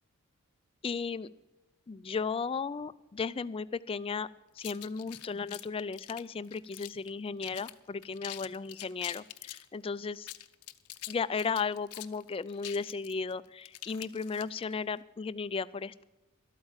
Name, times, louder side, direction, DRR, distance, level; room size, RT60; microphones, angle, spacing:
voice 1, 0.8-1.3 1.9-4.3 4.6-10.3 11.1-16.0, left 5 dB, 25° left, 16 dB, 0.3 m, -35 dB
sound 1, 4.6-7.1 7.4-7.7 8.0-9.7 10.1-14.7, left 15 dB, 85° left, 0.6 m, -45 dB
12.5 x 8.8 x 7.2 m, 1.0 s
head